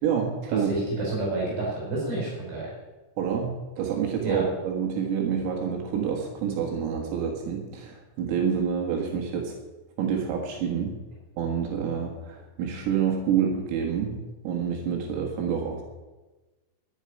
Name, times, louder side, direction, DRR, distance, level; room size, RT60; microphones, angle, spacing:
voice 1, 0.0-0.7 3.2-9.6 10.0-11.0 11.4-14.2 14.4-15.8, right 7 dB, 85° right, 1 dB, 4.4 m, -28 dB
voice 2, 0.7-2.7 4.2-4.4, right 2 dB, 55° right, -3 dB, 6.7 m, -29 dB
12.0 x 9.4 x 9.8 m, 1.2 s
omnidirectional pair, 5.8 m